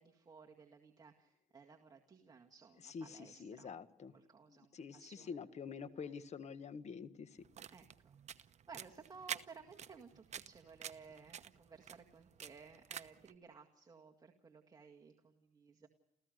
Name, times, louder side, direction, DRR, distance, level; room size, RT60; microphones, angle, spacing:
voice 1, 0.0-3.8 4.1-5.4 7.7-15.9, right 5 dB, 25° right, 1 dB, 1.9 m, -58 dB
voice 2, 2.8-4.1 4.5-7.4, left 6 dB, 40° left, 12 dB, 1.5 m, -47 dB
sound 1, 7.4-13.3, right 8 dB, 40° right, 0.9 m, -49 dB
29.5 x 15.0 x 6.5 m, 0.86 s
cardioid pair, 110°, 17 cm